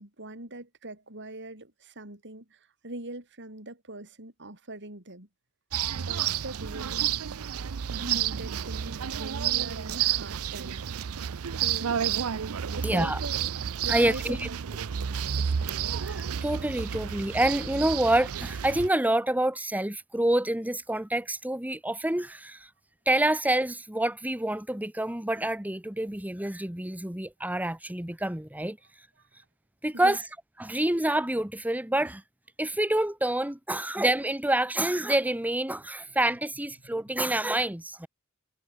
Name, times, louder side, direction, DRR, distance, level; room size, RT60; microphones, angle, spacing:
voice 1, 0.0-5.3 6.0-7.2 8.0-10.9 11.5-12.0 12.7-13.6 13.8-14.6 15.0-15.9 29.9-30.3 30.6-30.8 36.0-36.3, right 2 dB, 55° right, 7.6 m, -42 dB
sound 1, 5.7-18.9, right 9 dB, 75° right, 0.6 m, -31 dB
voice 2, 12.8-13.2 13.9-14.5 16.0-22.7 23.1-29.1 29.8-30.2 30.6-32.2 32.6-38.1, right 1 dB, 5° right, 1.2 m, -27 dB
head